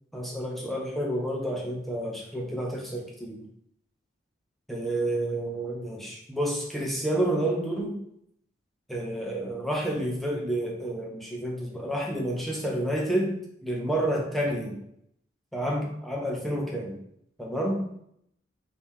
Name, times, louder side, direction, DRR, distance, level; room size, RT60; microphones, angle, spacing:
voice 1, 0.1-3.4 4.7-8.0 8.9-14.8 15.5-17.0 17.4-17.9, right 1 dB, ahead, -2 dB, 0.8 m, -29 dB
5.2 x 2.9 x 3.5 m, 0.71 s
head